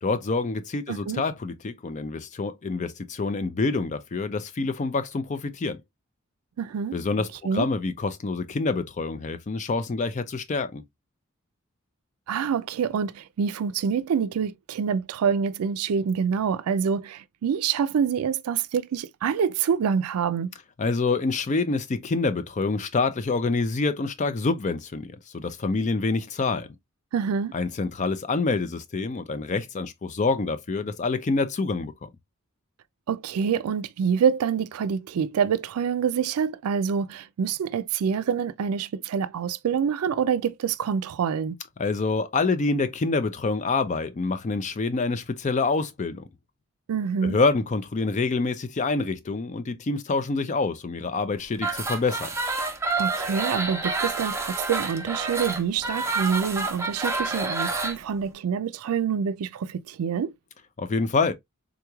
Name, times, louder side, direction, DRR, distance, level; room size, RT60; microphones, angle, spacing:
voice 1, 0.0-5.8 6.9-10.8 20.8-26.7 27.5-32.1 41.8-46.2 47.2-52.3 60.8-61.3, left 3 dB, 35° left, 0.4 m, -26 dB
voice 2, 0.9-1.2 6.6-7.0 7.4-7.7 12.3-20.5 27.1-27.5 33.1-41.6 46.9-47.4 53.0-60.3, right 7 dB, 90° right, 0.4 m, -26 dB
sound 1, 51.5-58.0, right 3 dB, 15° right, 0.6 m, -28 dB
3.8 x 3.0 x 2.2 m
head